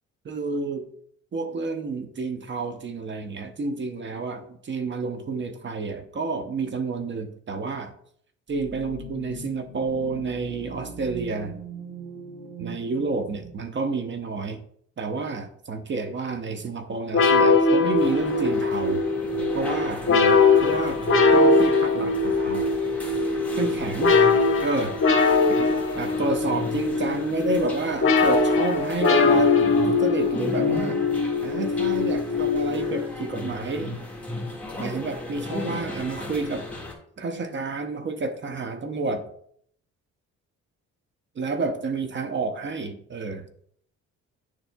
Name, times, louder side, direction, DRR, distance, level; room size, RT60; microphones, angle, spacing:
voice 1, 0.2-0.9 1.3-7.9 8.5-11.6 12.6-14.6 15.0-19.0 19.5-21.0 21.3-22.7 23.6-24.1 24.6-25.0 25.5-29.6 29.9-31.0 31.4-34.0 34.8-36.7 37.2-39.3 41.4-43.5, right 3 dB, 40° right, 8 dB, 0.7 m, -30 dB
sound 1, 8.5-13.5, right 2 dB, 80° right, 1.5 m, -40 dB
sound 2, 17.1-33.3, left 3 dB, 45° left, 1.2 m, -21 dB
sound 3, 17.9-36.9, left 2 dB, 5° left, 1.7 m, -37 dB
10.0 x 4.4 x 2.2 m, 0.64 s
cardioid pair, 90°, 30 cm